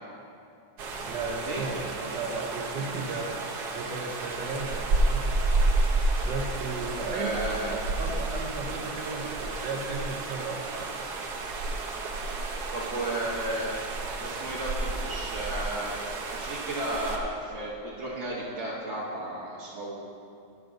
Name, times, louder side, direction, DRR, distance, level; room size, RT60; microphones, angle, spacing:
sound 1, 0.8-17.2, right 2 dB, 70° right, 1.4 m, -31 dB
voice 1, 1.1-3.4 3.7-5.2 6.2-10.9, right 3 dB, 85° right, -2 dB, 1.5 m, -35 dB
voice 2, 7.1-7.7 12.7-13.8 14.2-14.7 15.0-16.0 16.4-20.0, right 1 dB, 45° right, -7 dB, 1.2 m, -33 dB
12.0 x 9.6 x 2.6 m, 2.5 s
omnidirectional pair, 1.8 m